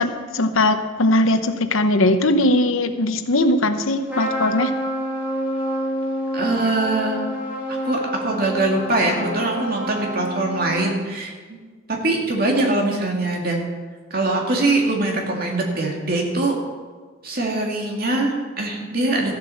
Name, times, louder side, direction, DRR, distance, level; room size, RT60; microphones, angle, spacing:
voice 1, 0.0-4.7, left 1 dB, 85° left, 9 dB, 1.0 m, -19 dB
Trumpet, 4.1-11.0, equal, 10° right, 3.2 m, -28 dB
voice 2, 6.3-7.2 7.8-11.6 12.0-13.6 14.1-16.5 17.2-19.3, right 2 dB, 45° right, 0 dB, 2.4 m, -22 dB
14.0 x 7.7 x 7.1 m, 1.5 s
head